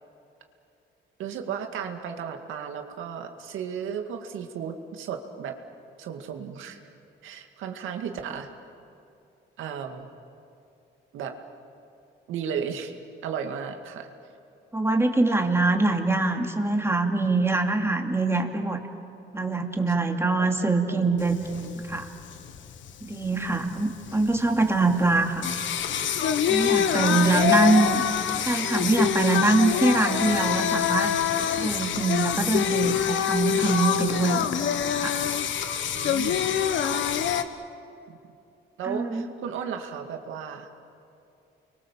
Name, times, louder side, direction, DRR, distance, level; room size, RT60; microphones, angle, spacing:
voice 1, 1.2-5.6 6.0-6.8 7.2-8.5 9.6-10.1 11.1-11.4 12.3-13.0 13.2-14.1 20.0-20.1 20.6-21.1 26.9-27.8 35.9-36.4 38.1-38.2 38.8-40.7, right 7 dB, 85° right, 5 dB, 2.2 m, -34 dB
voice 2, 14.7-18.8 19.3-22.1 23.0-25.5 26.5-28.0 28.4-31.1 31.6-35.2 38.8-39.3, right 3 dB, 10° right, 3 dB, 2.7 m, -24 dB
Singing, 21.2-37.4, left 9 dB, 70° left, 1.3 m, -26 dB
30.0 x 23.5 x 7.5 m, 2.8 s
cardioid pair, 90°, 20 cm